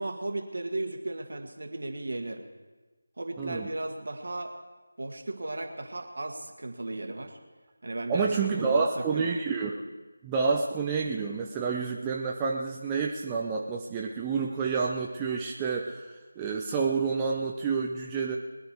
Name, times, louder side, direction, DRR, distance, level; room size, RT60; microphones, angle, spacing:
voice 1, 0.0-2.5 3.2-4.5 5.0-7.4 7.8-9.4, right 2 dB, 55° right, 5 dB, 1.7 m, -35 dB
voice 2, 3.4-3.7 8.1-9.8 10.2-18.4, right 5 dB, 15° right, -1 dB, 0.6 m, -29 dB
21.0 x 10.0 x 4.8 m, 1.3 s
figure-of-eight pair, 165°, 0 cm